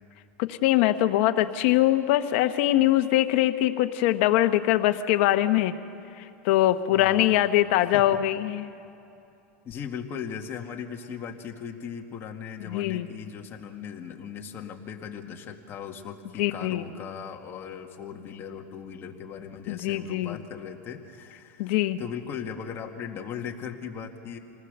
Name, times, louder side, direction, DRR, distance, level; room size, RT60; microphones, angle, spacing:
voice 1, 0.4-5.7 6.2-8.7 12.6-13.1 16.4-16.9 19.7-20.4 21.6-22.0, left 14 dB, 65° left, 9 dB, 1.1 m, -23 dB
voice 2, 6.9-8.2 9.6-24.4, left 7 dB, 35° left, 2 dB, 2.0 m, -38 dB
26.5 x 19.5 x 6.7 m, 2.7 s
supercardioid pair, 130°, 7 cm